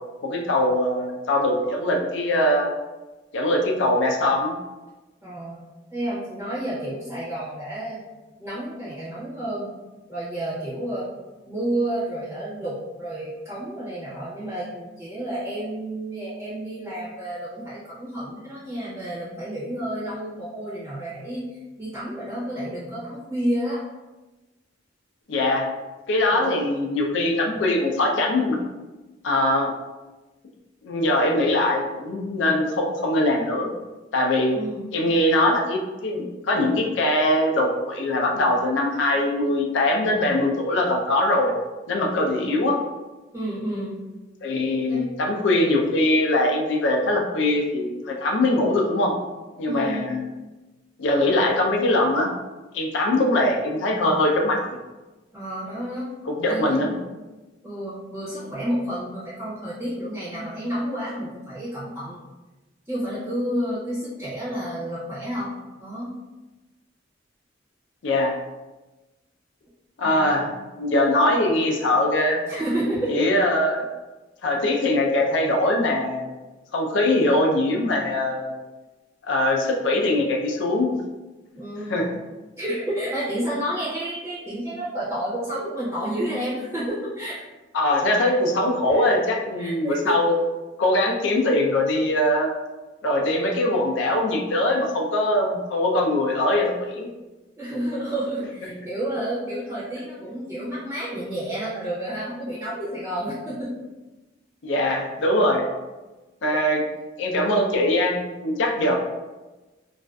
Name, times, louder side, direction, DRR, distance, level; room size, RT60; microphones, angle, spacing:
voice 1, 0.2-2.7 3.3-4.5 25.3-25.7 26.1-28.7 29.2-29.7 30.8-33.7 34.1-34.6 34.9-41.5 41.9-42.8 44.4-49.1 49.6-50.3 51.0-52.3 52.7-54.6 56.2-56.9 68.0-68.3 70.0-70.5 70.7-72.4 73.1-73.9 74.4-76.3 76.7-78.6 79.3-80.9 81.9-82.1 87.7-90.3 90.8-92.5 93.0-97.1 104.6-105.7 106.4-106.8 107.2-109.0, left 1 dB, 75° left, 1 dB, 0.4 m, -22 dB
voice 2, 5.2-5.6 5.9-8.0 8.4-9.7 10.1-11.1 11.5-21.5 21.8-23.8 26.3-26.7 34.5-34.9 42.1-42.6 43.3-44.0 44.9-45.1 49.7-50.1 55.3-56.1 56.5-57.1 57.6-62.2 62.9-66.1 70.0-70.5 72.5-73.3 81.5-82.1 82.6-87.4 88.9-89.1 89.6-90.2 97.6-103.7, right 1 dB, 15° right, -9 dB, 0.5 m, -30 dB
2.4 x 2.3 x 2.2 m, 1.1 s
head